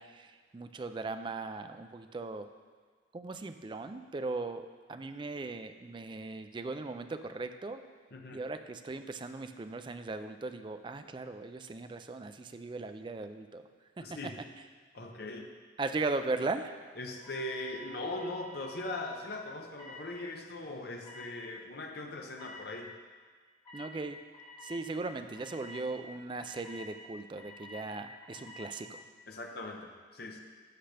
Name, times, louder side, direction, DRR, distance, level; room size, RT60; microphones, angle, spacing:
voice 1, 0.0-2.5 3.1-7.9 8.3-13.7 14.0-14.3 15.8-16.8 23.7-24.2 24.6-29.0, right 3 dB, 25° right, 8 dB, 0.3 m, -38 dB
voice 2, 8.1-8.4 14.0-14.4 14.9-15.5 17.0-22.9 29.3-30.4, left 2 dB, 60° left, 2 dB, 0.8 m, -40 dB
sound 1, 17.2-19.0 19.7-20.0 21.0-21.2 22.4-22.5 23.6-23.9 24.3-24.8 25.3-25.8 26.4-26.8 27.4-27.8 28.2-28.6, left 1 dB, 25° left, 1.9 m, -50 dB
11.5 x 6.5 x 3.3 m, 1.5 s
head